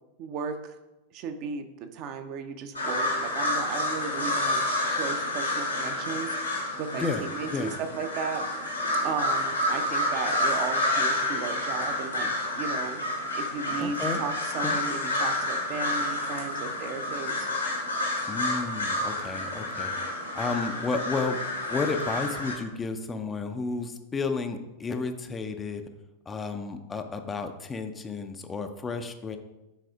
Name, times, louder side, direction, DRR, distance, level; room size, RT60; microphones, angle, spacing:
voice 1, 0.2-0.8 1.1-6.4 6.8-8.4 9.0-13.0 13.3-17.5, right 5 dB, 40° right, 7 dB, 0.7 m, -35 dB
sound 1, 2.7-22.6, left 1 dB, 80° left, 1.8 m, -29 dB
voice 2, 13.8-14.2 14.6-14.8 18.3-20.0 20.3-21.4 21.7-25.8 26.3-29.4, left 4 dB, 20° left, 7 dB, 0.5 m, -32 dB
6.4 x 4.1 x 4.9 m, 1.0 s
figure-of-eight pair, 90°, 0 cm